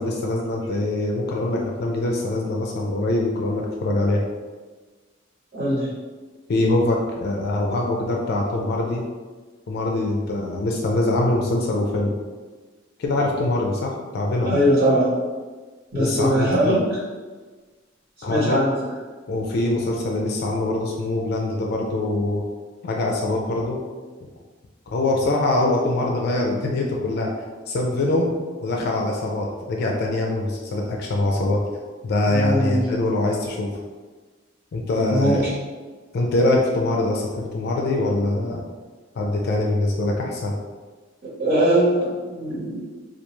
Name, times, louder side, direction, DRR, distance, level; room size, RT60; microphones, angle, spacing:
voice 1, 0.0-4.2 6.5-9.0 9.7-12.2 13.0-14.5 15.9-16.8 18.2-18.6 19.3-22.4 22.8-23.8 24.2-24.3 24.9-27.3 27.7-28.3 28.6-31.6 32.0-33.7 34.7-35.4 36.1-38.6 39.2-40.5, left 2 dB, 55° left, -1 dB, 0.4 m, -23 dB
voice 2, 5.5-5.9 14.4-15.1 15.9-16.8 18.3-18.9 32.2-32.9 35.1-35.4 41.4-42.9, right 1 dB, 55° right, -9 dB, 1.2 m, -21 dB
2.3 x 2.3 x 3.0 m, 1.4 s
head